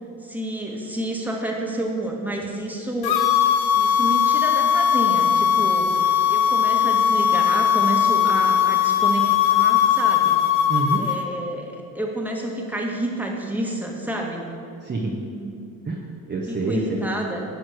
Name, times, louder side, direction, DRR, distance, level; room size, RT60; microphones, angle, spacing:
voice 1, 0.2-3.2 3.7-5.9 6.3-10.4 11.0-14.5 15.3-15.5 16.5-17.4, right 1 dB, 5° right, 0 dB, 1.7 m, -29 dB
sound 1, 3.0-11.2, left 9 dB, 60° left, 1.0 m, -19 dB
voice 2, 10.7-11.1 14.8-15.2 15.9-17.1, right 3 dB, 25° right, -2 dB, 1.2 m, -27 dB
11.5 x 4.4 x 6.4 m, 2.5 s
supercardioid pair, 75°, 41 cm